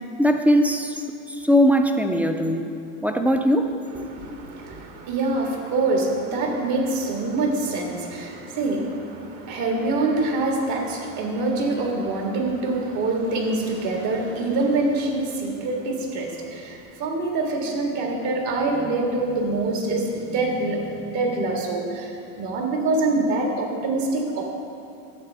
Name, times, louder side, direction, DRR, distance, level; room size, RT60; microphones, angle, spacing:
voice 1, 0.2-2.7 3.0-3.7, equal, 5° right, 5 dB, 0.4 m, -20 dB
voice 2, 4.1-22.1 22.4-24.4, right 2 dB, 55° right, 0 dB, 1.9 m, -25 dB
12.0 x 7.9 x 3.5 m, 2.6 s
hypercardioid pair, 95°, 41 cm